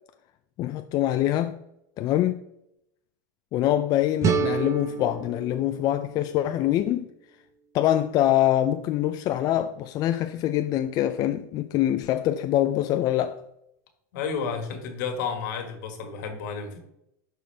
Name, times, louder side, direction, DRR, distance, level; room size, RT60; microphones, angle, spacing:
voice 1, 0.6-1.6 2.0-2.4 3.5-7.1 7.7-13.4, left 12 dB, 40° left, 0.4 m, -24 dB
sound 1, 4.2-7.1, right 6 dB, 30° right, 0.8 m, -29 dB
voice 2, 14.1-16.8, left 6 dB, 70° left, 1.8 m, -31 dB
12.0 x 4.5 x 3.4 m
supercardioid pair, 125°, 10 cm